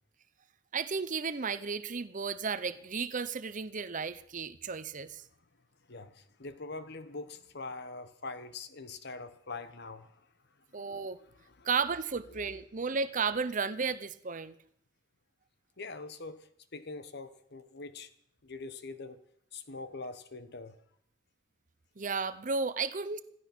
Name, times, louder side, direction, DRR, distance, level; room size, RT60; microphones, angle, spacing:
voice 1, 0.7-5.2 10.7-11.2 11.6-14.6 22.0-23.2, right 5 dB, 45° right, 0.8 m, -33 dB
voice 2, 5.9-10.3 10.7-10.8 11.2-11.7 12.3-12.5 15.8-18.1 18.4-19.2 19.5-20.8, left 3 dB, 60° left, 1.2 m, -44 dB
16.0 x 14.0 x 6.2 m
head